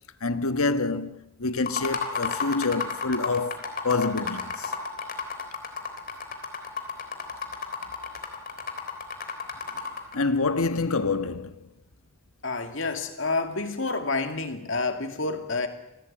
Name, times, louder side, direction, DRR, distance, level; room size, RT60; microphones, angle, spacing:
voice 1, 0.2-4.7 10.1-11.7, left 3 dB, 85° left, 1.3 m, -27 dB
sound 1, 1.6-10.2, left 5 dB, 40° left, 3.5 m, -33 dB
voice 2, 12.4-15.7, left 3 dB, 60° left, 2.5 m, -29 dB
26.5 x 17.5 x 8.9 m
head